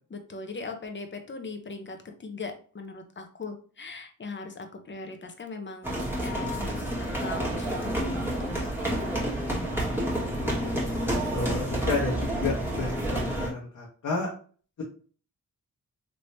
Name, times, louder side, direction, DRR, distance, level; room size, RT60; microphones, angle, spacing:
voice 1, 0.1-5.9 6.2-8.7, left 3 dB, 35° left, 5 dB, 0.8 m, -39 dB
sound 1, 5.8-13.5, right 1 dB, 5° right, 1.6 m, -29 dB
voice 2, 10.4-10.8 11.3-14.3, left 3 dB, 60° left, -4 dB, 1.1 m, -31 dB
3.3 x 2.9 x 2.7 m, 0.41 s
cardioid pair, 70°, 35 cm